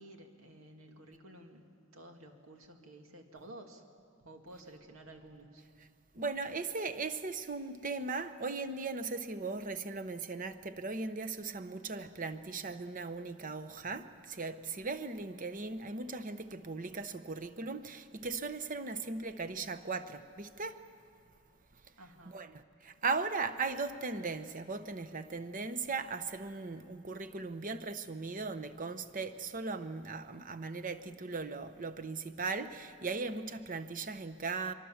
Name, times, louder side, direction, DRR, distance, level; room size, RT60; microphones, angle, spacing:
voice 1, 0.0-3.8 4.2-5.6 22.0-22.4, right 1 dB, 85° right, 2.3 m, -53 dB
voice 2, 6.1-20.8 22.3-34.7, right 4 dB, 40° right, 0.9 m, -38 dB
24.5 x 23.5 x 7.3 m
head